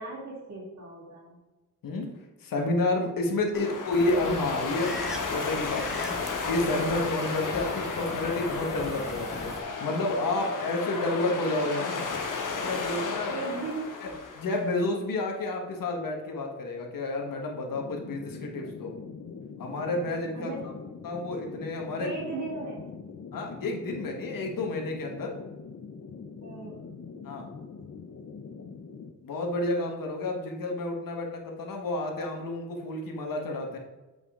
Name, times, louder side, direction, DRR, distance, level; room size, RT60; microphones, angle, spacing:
voice 1, 0.0-1.4 3.4-3.5 13.3-13.9 20.3-20.7 22.0-22.8 26.4-26.8, right 3 dB, 60° right, -9 dB, 2.6 m, -37 dB
voice 2, 2.4-4.9 5.3-12.0 12.6-13.3 14.0-14.1 14.3-18.9 19.6-20.5 21.0-22.1 23.3-25.3 27.2-27.5 29.2-33.8, left 2 dB, 85° left, 2 dB, 1.6 m, -30 dB
sound 1, 3.5-14.7, left 4 dB, 70° left, 1.4 m, -33 dB
sound 2, 3.9-9.6, equal, ahead, 0.8 m, -42 dB
sound 3, 17.7-29.1, left 5 dB, 45° left, 0.7 m, -43 dB
7.8 x 5.4 x 3.8 m, 1.2 s
wide cardioid pair, 165°, 33 cm